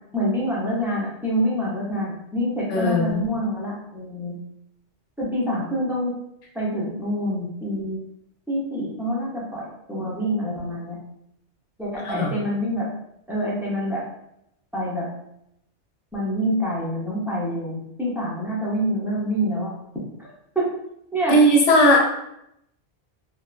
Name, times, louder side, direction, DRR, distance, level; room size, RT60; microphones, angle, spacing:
voice 1, 0.1-4.3 5.2-6.1 6.5-8.0 8.5-11.0 11.8-12.9 13.3-14.0 14.7-15.1 16.1-19.7 20.2-20.3 20.5-20.7 21.1-21.4, equal, 5° right, -6 dB, 0.3 m, -26 dB
voice 2, 2.7-3.2 12.0-12.3 21.3-22.0, equal, 85° left, -1 dB, 1.0 m, -17 dB
3.0 x 2.1 x 2.3 m, 0.79 s
omnidirectional pair, 1.2 m